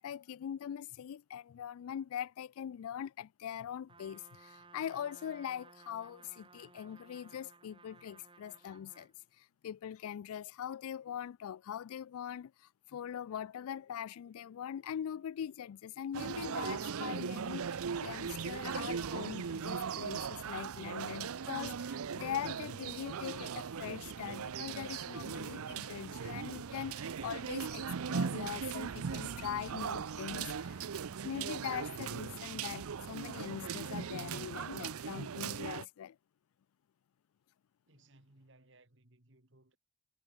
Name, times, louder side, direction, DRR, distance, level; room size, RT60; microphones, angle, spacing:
voice 1, 0.0-30.8 31.2-36.2, left 9 dB, 85° left, 0.3 m, -42 dB
Trumpet, 3.9-9.2, right 3 dB, 25° right, 2.7 m, -59 dB
sound 1, 16.1-35.8, right 6 dB, 85° right, 0.6 m, -39 dB
voice 2, 37.9-39.8, right 2 dB, 55° right, 2.2 m, -63 dB
head